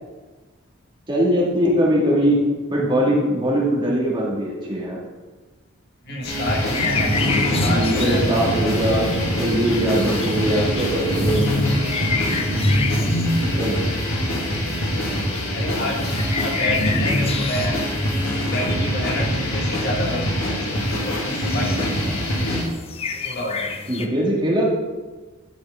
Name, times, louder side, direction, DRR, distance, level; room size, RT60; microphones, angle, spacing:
voice 1, 1.1-2.4 2.7-5.0 7.5-9.1 9.4-11.6 13.4-13.7 23.9-24.7, equal, 25° right, -4 dB, 2.1 m, -21 dB
voice 2, 6.1-7.2 7.6-8.3 15.5-17.8 18.5-22.3 23.1-23.7, left 1 dB, 50° left, -1 dB, 1.7 m, -29 dB
sound 1, 6.2-22.6, equal, 90° left, 2.4 m, -23 dB
sound 2, 6.2-17.9 18.3-18.4 19.0-19.1 19.4-19.5 19.8-20.4 20.7-24.1, left 5 dB, 30° left, 0.6 m, -31 dB
sound 3, 6.8-12.8, right 1 dB, 85° right, 1.1 m, -30 dB
11.5 x 6.0 x 3.7 m, 1.3 s
head